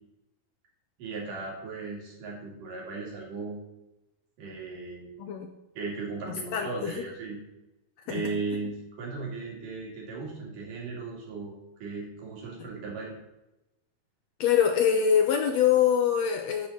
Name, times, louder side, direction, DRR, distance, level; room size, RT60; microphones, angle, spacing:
voice 1, 1.0-3.6 4.4-5.1 5.8-7.4 8.1-11.5 11.8-13.1, right 3 dB, 85° right, -3 dB, 4.5 m, -36 dB
voice 2, 5.2-5.5 6.2-7.0 8.1-8.2 14.4-16.7, left 8 dB, 75° left, 6 dB, 1.6 m, -24 dB
11.0 x 6.9 x 5.7 m, 0.97 s
omnidirectional pair, 3.7 m